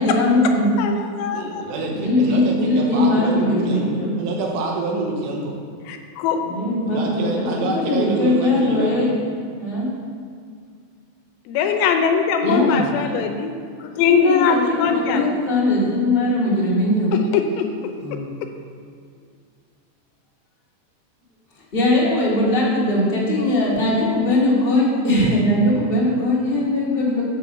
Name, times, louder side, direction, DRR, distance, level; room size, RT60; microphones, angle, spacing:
voice 1, 0.0-0.8 1.9-4.1 6.4-9.1 9.6-9.9 12.4-12.9 14.0-17.1 18.0-18.3 21.7-27.2, left 1 dB, 40° left, -7 dB, 0.8 m, -20 dB
voice 2, 0.8-1.6 5.9-6.4 11.5-13.5 13.8-15.2 17.3-17.7 18.1-18.2, left 6 dB, 80° left, 5 dB, 2.9 m, -21 dB
voice 3, 1.3-3.8 4.2-5.5 6.8-9.0, right 3 dB, 80° right, -1 dB, 3.3 m, -26 dB
8.3 x 6.3 x 5.4 m, 2.1 s
omnidirectional pair, 5.1 m